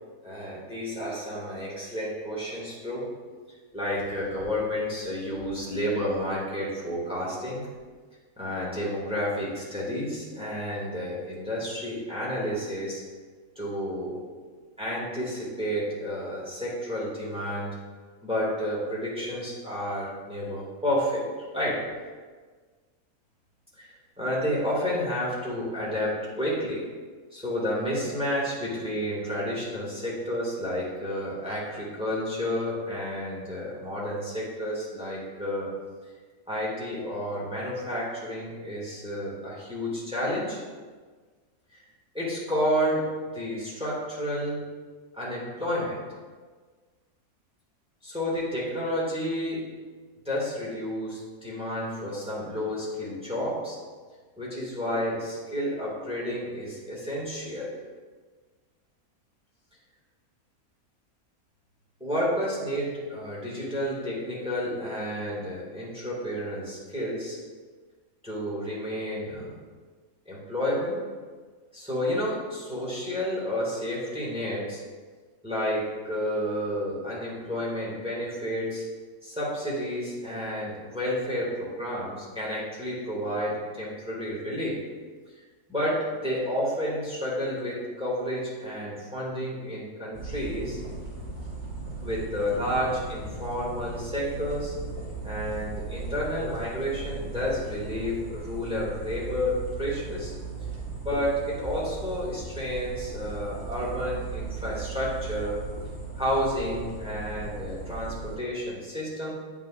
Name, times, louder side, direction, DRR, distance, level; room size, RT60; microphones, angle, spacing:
voice 1, 0.2-3.1 3.7-7.7 8.4-13.0 13.5-14.2 14.8-17.8 18.2-21.9 23.8-26.9 27.3-35.7 36.5-40.6 41.7-41.8 42.1-44.6 45.1-46.0 48.0-49.7 50.2-53.8 54.4-57.7 62.0-67.4 68.2-69.5 70.2-71.0 71.7-74.8 75.4-78.9 79.2-84.8 85.7-90.8 92.0-94.7 95.2-100.3 101.0-105.6 106.2-109.3, equal, 5° right, -6 dB, 1.8 m, -30 dB
sound 1, 90.1-108.4, right 3 dB, 50° right, 2.0 m, -37 dB
9.0 x 6.1 x 2.5 m, 1.5 s
omnidirectional pair, 1.6 m